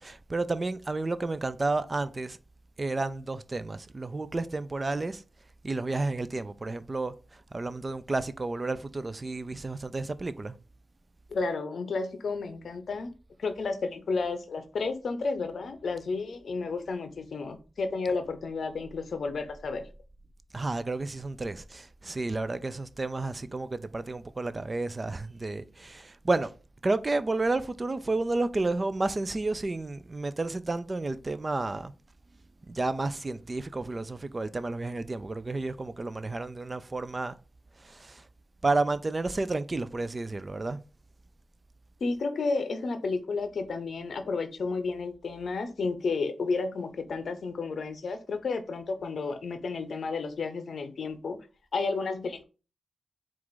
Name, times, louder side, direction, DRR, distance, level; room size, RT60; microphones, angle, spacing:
voice 1, 0.0-2.4 2.8-5.2 5.6-10.6 20.5-26.5 26.8-31.9 32.7-37.4 37.8-38.3 38.6-40.8, right 2 dB, 40° right, 0.4 m, -31 dB
voice 2, 11.3-13.1 13.4-19.8 42.0-51.4 51.7-52.4, left 4 dB, 70° left, 0.6 m, -32 dB
4.4 x 2.4 x 3.9 m
supercardioid pair, 40°, 0 cm